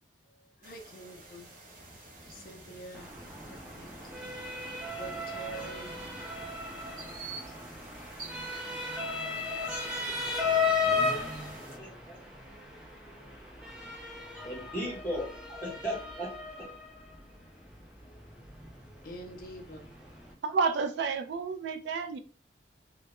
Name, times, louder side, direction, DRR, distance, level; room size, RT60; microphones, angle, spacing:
voice 1, 0.3-1.5 2.3-3.1 3.7-3.9 5.0-6.0 19.0-19.8, right 1 dB, 50° left, 0.4 m, -45 dB
sound 1, 0.6-11.8, right 3 dB, 45° right, 0.7 m, -49 dB
Motor vehicle (road) / Siren, 2.9-20.3, left 4 dB, 5° right, 0.5 m, -36 dB
voice 2, 9.5-10.1 11.8-12.2 14.3-16.7, equal, 10° left, 0.8 m, -38 dB
voice 3, 20.4-22.2, right 4 dB, 75° right, 0.3 m, -30 dB
2.2 x 2.0 x 2.9 m
head